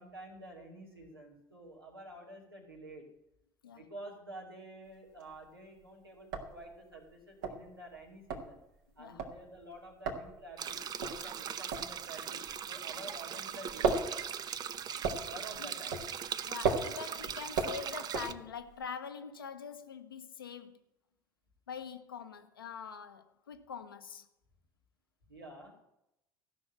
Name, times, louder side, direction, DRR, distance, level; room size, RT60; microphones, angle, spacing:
voice 1, 0.0-3.1 3.7-8.6 9.0-14.1 15.2-16.0 25.3-25.7, right 1 dB, 85° right, 2.6 m, -49 dB
sound 1, 4.9-5.5 5.8-5.9 6.2-13.2 13.5-18.8, right 4 dB, 60° right, 1.8 m, -36 dB
sound 2, 10.6-18.3, right 8 dB, 35° right, 0.6 m, -40 dB
voice 2, 16.5-20.8 21.7-24.2, left 6 dB, 80° left, 0.9 m, -44 dB
15.0 x 6.2 x 8.6 m
figure-of-eight pair, 65°, 12 cm